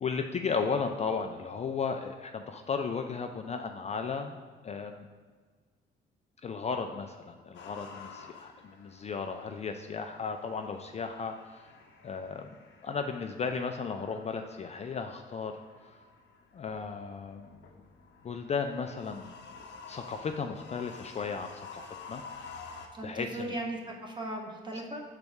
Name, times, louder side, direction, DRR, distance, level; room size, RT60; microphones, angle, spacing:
voice 1, 0.0-4.4 4.6-5.1 6.4-11.7 12.0-12.5 12.8-15.5 16.5-17.6 18.2-19.3 19.9-22.7 23.0-23.5, left 5 dB, 35° left, 5 dB, 0.4 m, -35 dB
sound 1, 7.5-22.9, left 5 dB, 65° left, 0.8 m, -51 dB
voice 2, 22.9-25.0, right 1 dB, 25° right, 0 dB, 1.1 m, -37 dB
6.6 x 4.0 x 3.5 m, 1.5 s
cardioid pair, 90°, 20 cm